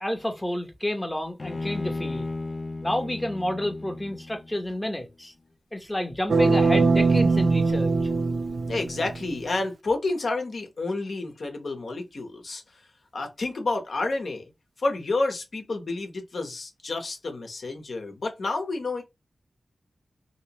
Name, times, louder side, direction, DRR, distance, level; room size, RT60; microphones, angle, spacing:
voice 1, 0.0-2.3 2.8-5.3 5.7-7.9, left 1 dB, 10° left, 0.8 m, -30 dB
Bowed string instrument, 1.4-4.7, left 2 dB, 40° left, 0.4 m, -34 dB
sound 1, 6.3-9.3, right 3 dB, 65° right, 0.4 m, -22 dB
voice 2, 8.7-14.5 14.8-19.0, left 3 dB, 60° left, 1.0 m, -30 dB
3.0 x 2.9 x 2.9 m
wide cardioid pair, 85°, 0 cm